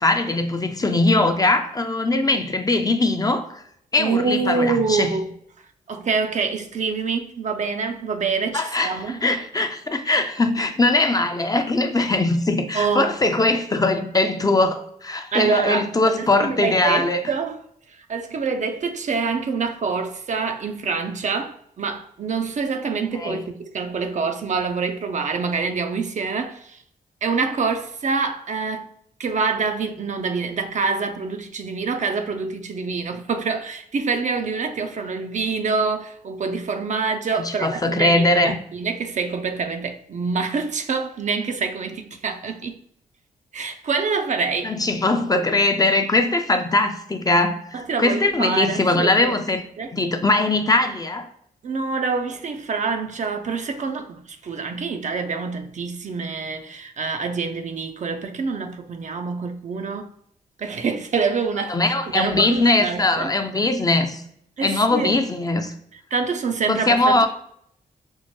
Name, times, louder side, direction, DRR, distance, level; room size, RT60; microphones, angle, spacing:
voice 1, 0.0-3.6 3.9-5.1 8.5-17.2 23.1-23.5 37.3-38.6 44.6-49.6 49.9-51.3 61.7-64.2 64.6-65.7 66.7-67.3, left 2 dB, 20° left, 0.5 m, -21 dB
voice 2, 4.0-5.2 5.9-9.2 12.7-13.1 15.3-17.6 18.1-26.8 27.2-28.9 29.2-42.8 43.5-44.7 47.7-49.4 49.8-49.9 51.6-60.1 60.6-63.3 64.6-65.1 66.1-67.3, right 5 dB, 50° right, 0.4 m, -26 dB
4.4 x 2.1 x 3.0 m
supercardioid pair, 50°, 17 cm